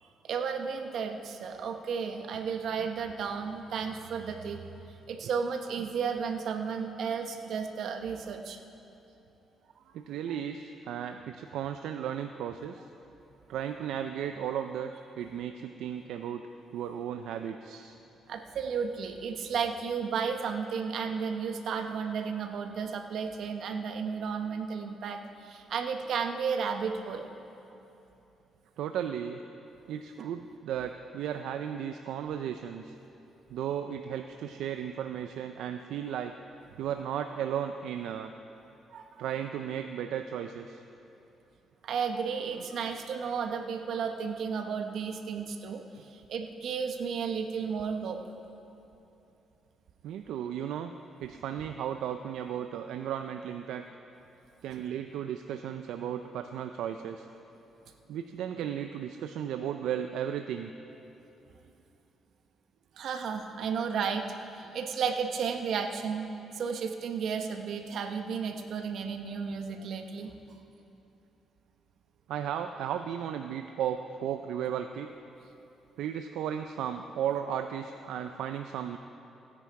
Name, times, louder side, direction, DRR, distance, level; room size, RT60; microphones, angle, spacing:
voice 1, 0.0-4.6 5.1-8.6 10.3-10.4 18.3-27.2 30.2-30.3 38.9-39.2 41.8-48.2 63.0-64.3 64.5-66.3 66.5-70.3, right 6 dB, 70° right, 5 dB, 1.0 m, -33 dB
voice 2, 9.9-12.8 13.5-16.4 16.7-18.0 28.8-29.4 29.9-33.0 33.5-36.3 36.8-38.3 39.2-40.8 46.0-46.1 50.0-50.9 51.2-53.8 54.6-57.3 58.1-60.7 64.6-64.8 72.3-75.1 76.0-79.0, right 9 dB, 85° right, 7 dB, 0.4 m, -35 dB
17.0 x 9.6 x 4.7 m, 3.0 s
cardioid pair, 90°, 0 cm